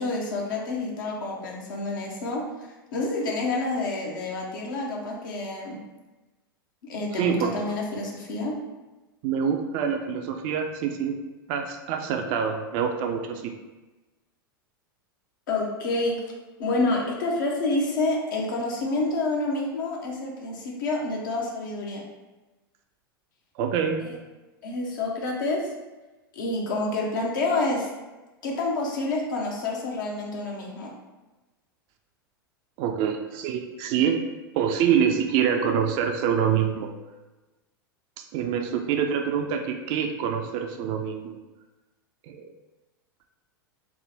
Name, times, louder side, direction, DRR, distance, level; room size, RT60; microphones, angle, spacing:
voice 1, 0.0-5.8 6.8-8.6 15.5-16.2 16.6-22.0 24.6-25.7 26.3-27.9 28.4-30.9, left 2 dB, 60° left, -1 dB, 0.8 m, -28 dB
voice 2, 7.2-7.5 9.2-11.1 11.5-13.5 23.6-24.1 32.8-34.2 34.5-36.9 38.2-41.4 42.3-42.5, right 7 dB, 45° right, 4 dB, 0.4 m, -26 dB
3.4 x 2.1 x 4.0 m, 1.1 s
figure-of-eight pair, 85°, 12 cm